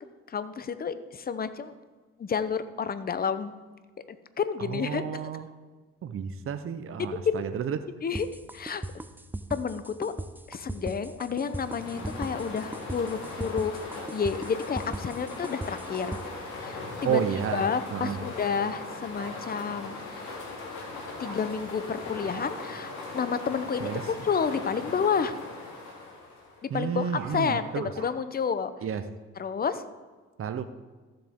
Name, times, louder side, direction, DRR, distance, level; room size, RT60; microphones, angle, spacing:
voice 1, 0.3-1.7 2.2-3.5 4.4-5.3 7.2-7.5 8.0-8.3 8.5-8.8 9.5-10.1 10.5-13.7 14.1-16.2 16.6-17.2 17.5-19.9 21.2-25.3 26.7-28.7 29.4-29.8, left 6 dB, 30° left, 12 dB, 0.7 m, -30 dB
voice 2, 4.6-5.5 6.0-7.8 17.0-18.2 23.8-24.0 26.7-27.9 28.8-29.1 30.4-30.6, right 8 dB, 45° right, 9 dB, 0.7 m, -31 dB
sound 1, 8.2-16.2, right 1 dB, 5° right, 0.5 m, -37 dB
sound 2, 11.3-26.7, left 3 dB, 85° left, 3.0 m, -39 dB
Bark, 19.2-19.3 21.2-21.4 22.3-22.5 22.8-23.0 24.2-24.4 26.9-28.1, right 5 dB, 80° right, 2.3 m, -44 dB
14.0 x 7.7 x 3.6 m, 1.3 s
cardioid pair, 90°, 30 cm